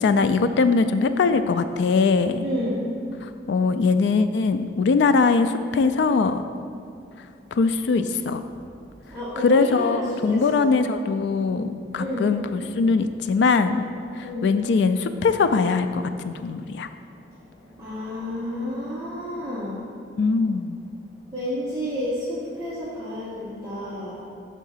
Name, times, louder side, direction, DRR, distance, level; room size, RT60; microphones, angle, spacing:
voice 1, 0.0-2.5 3.2-6.4 7.5-8.4 9.4-13.9 14.2-16.9 20.2-20.8, left 4 dB, 70° left, 10 dB, 0.3 m, -21 dB
voice 2, 2.4-2.8 9.1-10.7 11.9-12.3 14.2-14.5 17.8-19.9 21.3-24.2, left 1 dB, 20° right, -10 dB, 0.9 m, -30 dB
5.7 x 3.6 x 5.6 m, 2.3 s
head